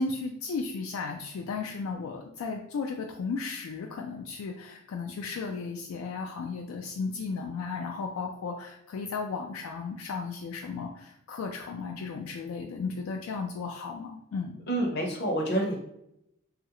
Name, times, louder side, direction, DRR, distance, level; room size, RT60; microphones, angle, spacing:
voice 1, 0.0-14.6, left 4 dB, 80° left, 3 dB, 0.3 m, -35 dB
voice 2, 14.7-15.8, right 1 dB, 50° left, 1 dB, 0.7 m, -28 dB
3.1 x 2.4 x 2.8 m, 0.79 s
head